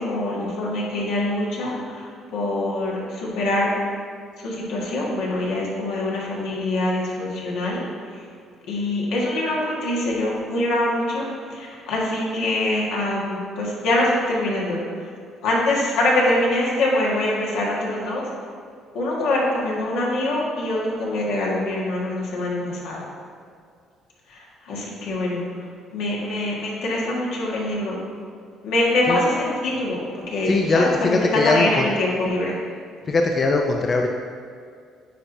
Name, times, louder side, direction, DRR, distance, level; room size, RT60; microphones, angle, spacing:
voice 1, 0.0-3.7 4.4-7.8 8.1-8.2 8.7-15.1 15.4-18.3 18.9-23.0 24.3-24.4 24.6-25.4 25.9-28.0 28.6-32.5, left 1 dB, 80° left, -4 dB, 1.5 m, -24 dB
voice 2, 30.5-31.9 33.1-34.1, left 3 dB, 35° left, 1 dB, 0.4 m, -20 dB
9.1 x 4.4 x 2.7 m, 2.2 s
cardioid pair, 115°, 0 cm